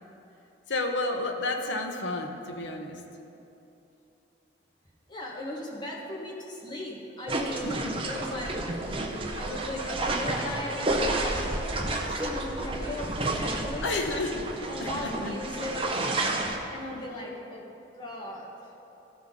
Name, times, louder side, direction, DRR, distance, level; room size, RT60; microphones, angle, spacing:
voice 1, 0.7-3.0 7.6-8.1 13.8-14.5 14.8-15.3 16.9-17.0, left 2 dB, 75° left, 3 dB, 0.9 m, -31 dB
voice 2, 5.1-7.7 8.0-11.4 12.0-13.9 14.7-16.1 16.7-17.7 18.0-18.5, left 1 dB, 25° left, -4 dB, 1.3 m, -37 dB
sound 1, 7.3-16.6, right 2 dB, 30° right, 0.7 m, -31 dB
14.5 x 5.9 x 3.7 m, 2.9 s
head